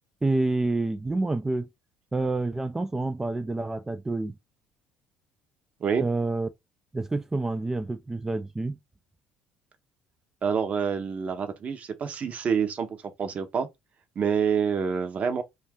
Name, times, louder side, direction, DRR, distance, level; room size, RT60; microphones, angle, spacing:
voice 1, 0.2-1.7 2.1-4.4 6.0-6.5 6.9-8.8, right 2 dB, 15° right, 0.4 m, -28 dB
voice 2, 10.4-12.9 13.2-13.7 14.2-15.4, right 6 dB, 45° right, 0.7 m, -27 dB
2.6 x 2.3 x 3.4 m
supercardioid pair, 80°, 3 cm